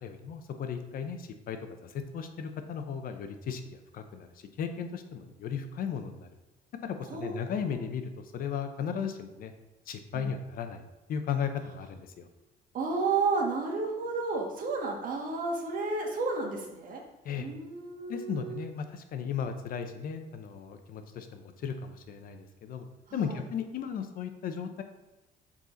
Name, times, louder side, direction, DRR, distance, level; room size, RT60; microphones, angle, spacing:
voice 1, 0.0-6.3 6.8-9.5 9.9-10.8 11.1-12.3 17.2-17.5 18.1-22.9 23.1-24.8, left 7 dB, 60° left, 7 dB, 0.7 m, -36 dB
voice 2, 7.0-7.8 10.1-10.3 12.7-17.0 17.4-18.6 23.1-23.4, right 4 dB, 55° right, 0 dB, 1.7 m, -32 dB
7.2 x 4.2 x 3.9 m, 1.0 s
cardioid pair, 110°, 17 cm